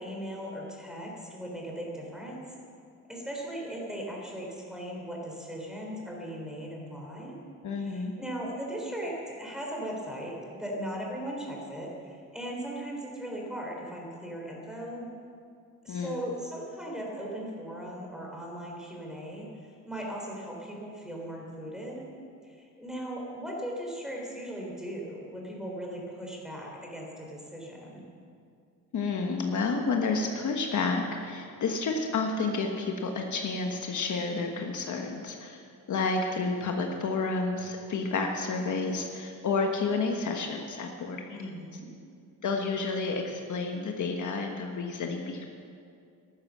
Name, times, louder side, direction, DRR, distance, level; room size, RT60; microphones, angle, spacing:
voice 1, 0.0-2.4 3.1-7.4 7.8-15.1 15.8-19.5 19.9-22.1 22.4-28.0 41.3-41.9, equal, ahead, -2 dB, 3.7 m, -38 dB
voice 2, 7.6-8.1 15.9-16.2 28.9-35.6 35.9-41.4 42.4-45.5, left 4 dB, 55° left, 2 dB, 1.3 m, -30 dB
13.5 x 12.5 x 7.4 m, 2.4 s
cardioid pair, 135°, 36 cm